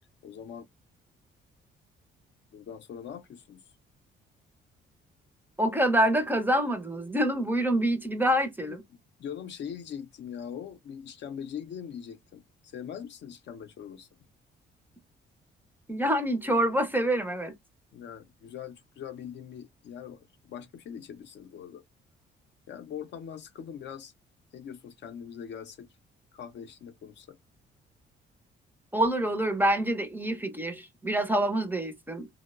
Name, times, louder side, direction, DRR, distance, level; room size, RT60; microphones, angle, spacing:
voice 1, 0.2-0.7 2.5-3.6 8.6-8.8 9.2-14.1 17.9-21.8 22.7-24.1 24.5-25.9 26.3-27.4, left 8 dB, 65° left, 0.5 m, -42 dB
voice 2, 5.6-8.8 15.9-17.5 28.9-32.3, right 1 dB, 10° right, 0.4 m, -26 dB
2.9 x 2.0 x 2.3 m
cardioid pair, 90°, 20 cm